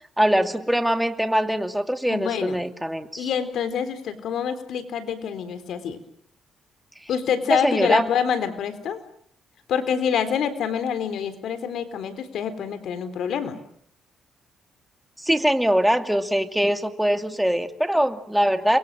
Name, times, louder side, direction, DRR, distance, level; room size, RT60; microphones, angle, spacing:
voice 1, 0.2-3.3 7.5-8.1 15.2-18.8, equal, 5° right, 7 dB, 2.5 m, -22 dB
voice 2, 2.1-2.6 3.2-6.0 7.1-9.0 9.7-13.6, left 8 dB, 75° left, 10 dB, 3.9 m, -26 dB
29.0 x 23.0 x 7.6 m, 0.67 s
cardioid pair, 90°, 0 cm